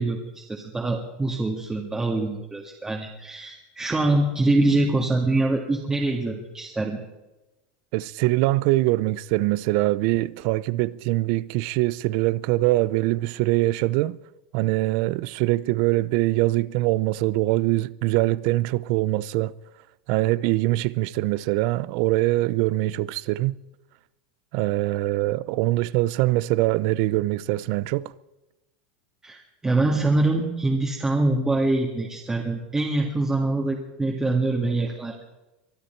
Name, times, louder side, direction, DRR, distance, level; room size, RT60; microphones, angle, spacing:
voice 1, 0.0-7.0 29.2-35.2, right 2 dB, 10° right, 1.8 m, -24 dB
voice 2, 7.9-14.2 14.5-19.5 20.1-23.6 24.5-28.1, right 18 dB, 55° right, 0.5 m, -23 dB
23.5 x 12.5 x 4.5 m
supercardioid pair, 135°, 5 cm